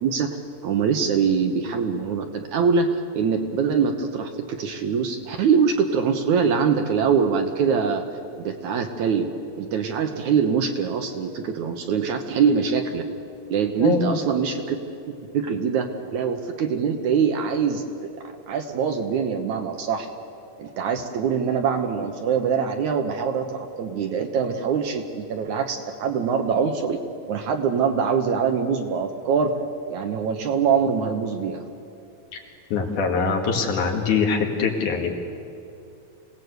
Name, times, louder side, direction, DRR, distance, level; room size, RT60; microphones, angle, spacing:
voice 1, 0.0-0.4 0.6-8.0 8.3-9.3 9.6-13.0 13.5-14.8 15.3-20.1 20.6-27.0 27.3-29.5 29.9-31.6, right 6 dB, 65° right, 5 dB, 2.2 m, -23 dB
voice 2, 13.8-14.2 32.3-32.4 32.7-35.1, left 5 dB, 60° left, 1 dB, 3.4 m, -23 dB
26.5 x 18.0 x 8.0 m, 2.6 s
omnidirectional pair, 4.1 m